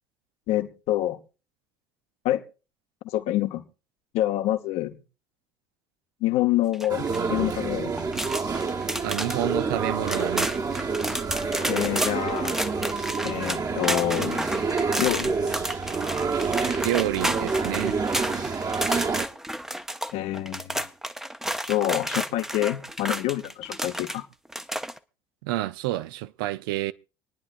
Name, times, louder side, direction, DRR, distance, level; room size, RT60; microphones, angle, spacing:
voice 1, 0.5-1.2 2.2-2.4 3.0-3.6 4.1-5.0 6.2-7.9 11.7-12.6 13.2-14.5 15.0-15.3 20.1-20.9 21.7-24.2, left 14 dB, 60° left, 1.0 m, -26 dB
sound 1, 6.7-7.2 8.0-9.4 9.8-9.9 10.1-24.2 24.5-25.0, equal, 5° right, 0.7 m, -31 dB
sound 2, 6.9-19.3, right 4 dB, 30° right, 1.2 m, -28 dB
voice 2, 9.0-10.5 16.8-18.0 25.4-26.9, right 16 dB, 70° right, 0.5 m, -28 dB
26.5 x 9.8 x 2.6 m
figure-of-eight pair, 60°, 12 cm